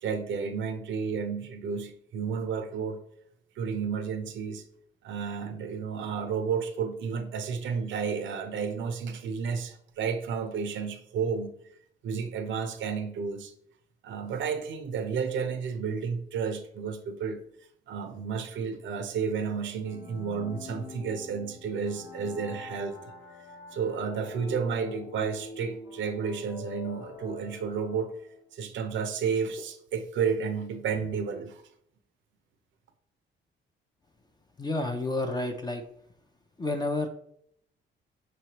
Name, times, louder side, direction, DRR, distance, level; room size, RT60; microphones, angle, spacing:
voice 1, 0.0-3.0 3.6-4.6 5.0-11.5 12.0-13.5 14.0-17.4 17.9-23.0 23.7-28.1 28.5-31.6, right 6 dB, 70° right, 8 dB, 0.7 m, -32 dB
sound 1, 19.8-28.5, left 4 dB, 85° left, 0.8 m, -45 dB
voice 2, 34.6-35.8 36.6-37.1, left 2 dB, 20° left, 4 dB, 0.5 m, -30 dB
5.5 x 3.1 x 3.0 m, 0.70 s
cardioid pair, 90°, 20 cm